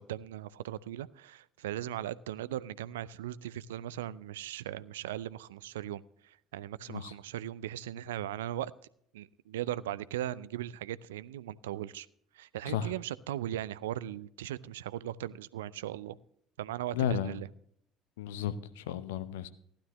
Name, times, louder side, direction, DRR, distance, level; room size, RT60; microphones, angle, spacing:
voice 1, 0.0-8.7 9.1-12.1 12.3-16.2 16.6-17.5, right 12 dB, 75° right, 0.4 m, -38 dB
voice 2, 16.9-17.4 18.2-19.5, left 9 dB, 75° left, 0.8 m, -33 dB
15.5 x 11.5 x 3.0 m
figure-of-eight pair, 60°, 0 cm